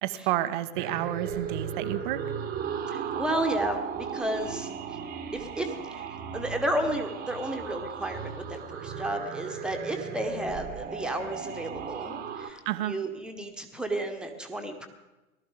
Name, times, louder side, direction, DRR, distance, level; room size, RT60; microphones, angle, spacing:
voice 1, 0.0-2.2 12.7-12.9, right 14 dB, 35° right, 13 dB, 0.7 m, -30 dB
sound 1, 0.7-12.5, right 6 dB, 20° right, 1.2 m, -36 dB
voice 2, 2.9-4.7 5.3-6.0 6.3-14.9, right 1 dB, ahead, 4 dB, 1.3 m, -32 dB
19.0 x 13.0 x 3.8 m, 1.1 s
figure-of-eight pair, 95°, 42 cm